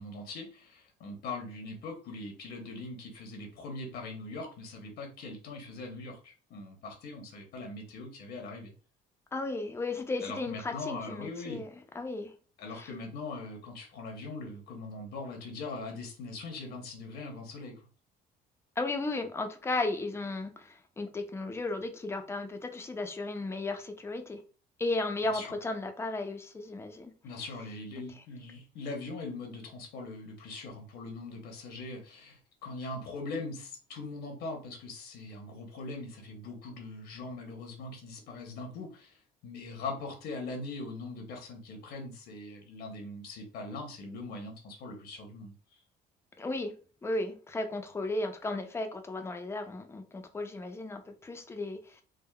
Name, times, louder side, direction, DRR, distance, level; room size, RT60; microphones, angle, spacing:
voice 1, 0.0-8.7 10.2-11.6 12.6-17.9 25.2-25.5 27.2-45.5, left 3 dB, 75° left, 0.9 m, -41 dB
voice 2, 9.3-11.7 12.0-12.3 12.8-12.9 18.8-24.4 24.8-27.1 46.4-46.7 47.0-52.0, left 2 dB, 15° left, 0.4 m, -35 dB
3.4 x 2.1 x 2.2 m
cardioid pair, 110°, 17 cm